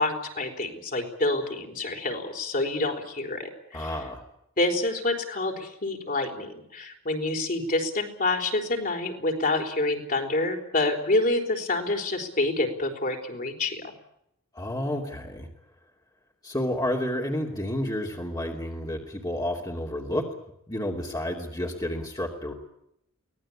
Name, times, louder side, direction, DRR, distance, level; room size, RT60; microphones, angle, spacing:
voice 1, 0.0-3.9 4.6-13.9, left 2 dB, 45° left, 3 dB, 4.2 m, -27 dB
voice 2, 3.7-4.2 14.5-15.5 16.4-20.2 20.7-22.5, left 1 dB, 20° left, 0 dB, 2.8 m, -30 dB
24.0 x 18.5 x 8.7 m, 0.78 s
head